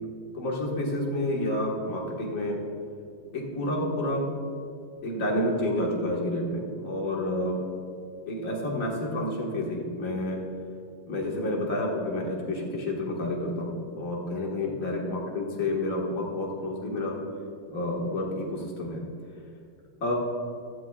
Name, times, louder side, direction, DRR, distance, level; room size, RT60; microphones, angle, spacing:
voice 1, 0.3-2.6 3.3-4.3 5.0-7.6 8.3-10.4 11.1-17.1 17.7-19.0 20.0-20.1, left 1 dB, 45° left, -3 dB, 2.1 m, -29 dB
15.0 x 13.0 x 2.4 m, 2.4 s
omnidirectional pair, 2.1 m